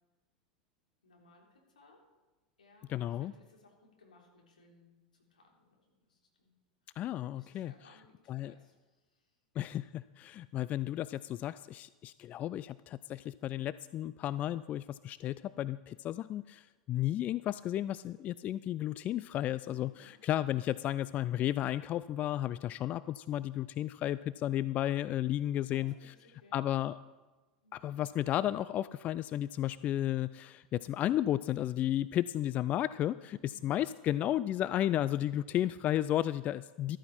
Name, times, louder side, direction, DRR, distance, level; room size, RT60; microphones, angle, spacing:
voice 1, 1.0-2.0 2.6-4.9 5.2-6.5 6.9-7.0 7.3-9.3 19.7-20.2 25.7-26.7 27.6-27.7 33.3-33.7, left 2 dB, 85° left, -1 dB, 3.5 m, -62 dB
voice 2, 2.9-3.3 7.0-7.7 8.3-8.5 9.6-26.1 26.5-27.0 27.7-37.0, left 12 dB, 35° left, 17 dB, 0.3 m, -33 dB
13.5 x 13.5 x 4.3 m, 1.2 s
hypercardioid pair, 90°, 4 cm